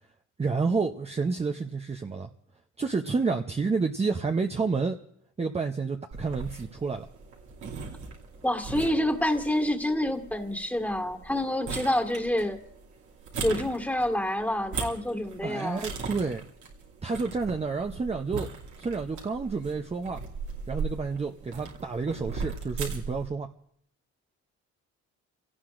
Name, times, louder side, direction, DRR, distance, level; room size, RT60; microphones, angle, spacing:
voice 1, 0.4-2.3 2.8-5.0 5.4-7.1 15.4-16.4 17.0-18.5 18.8-20.2 20.7-23.5, right 4 dB, 20° right, 4 dB, 0.7 m, -29 dB
sound 1, 6.1-23.3, right 4 dB, 75° right, 2.6 m, -39 dB
voice 2, 8.4-12.6 13.4-15.9, left 1 dB, 5° left, 4 dB, 1.8 m, -27 dB
29.0 x 17.5 x 2.5 m, 0.69 s
cardioid pair, 90°, 30 cm